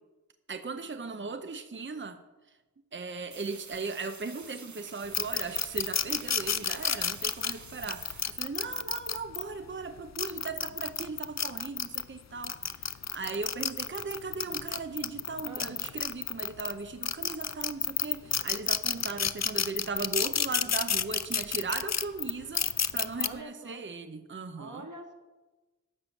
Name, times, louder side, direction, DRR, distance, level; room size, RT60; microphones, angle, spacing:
voice 1, 0.5-2.2 2.9-12.6 13.1-22.7 22.9-24.9, right 4 dB, 40° right, 10 dB, 0.6 m, -38 dB
sound 1, 3.3-8.3, right 4 dB, 65° right, 0.8 m, -49 dB
sound 2, 5.1-9.4 10.0-12.0 12.4-16.7 17.0-23.3, left 7 dB, 60° left, 0.5 m, -30 dB
voice 2, 15.4-15.8 23.2-23.8 24.5-25.1, right 2 dB, 90° right, 3 dB, 1.5 m, -45 dB
11.0 x 6.7 x 7.1 m, 1.2 s
wide cardioid pair, 45°, 30 cm